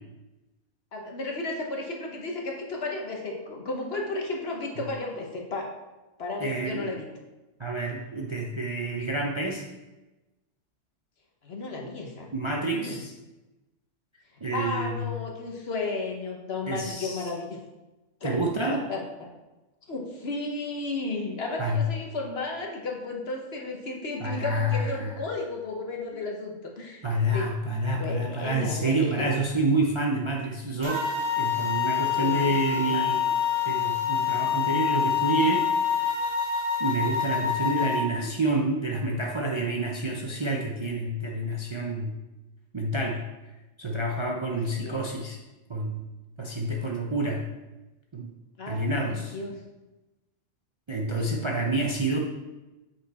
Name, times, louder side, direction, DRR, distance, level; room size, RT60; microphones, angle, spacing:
voice 1, 0.9-5.7 6.2-7.0 11.4-12.3 12.6-13.0 14.5-17.6 18.2-19.0 19.9-27.0 27.3-27.5 27.9-29.4 32.1-33.1 44.4-45.0 48.6-49.5 51.1-51.4, left 3 dB, 55° left, 1 dB, 1.3 m, -34 dB
voice 2, 6.4-6.9 7.6-9.6 12.3-13.1 14.4-15.0 16.7-17.3 18.2-18.8 21.6-21.9 24.2-25.1 27.0-31.0 31.4-33.2 33.7-35.6 35.9-36.1 36.8-42.1 42.7-43.2 43.8-45.4 45.7-46.0 46.4-47.4 48.1-48.3 48.7-49.3 50.9-52.2, right 2 dB, 35° right, 0 dB, 0.5 m, -28 dB
sound 1, 30.8-38.0, left 8 dB, 80° right, 1.8 m, -26 dB
8.2 x 4.5 x 4.2 m, 1.1 s
omnidirectional pair, 1.3 m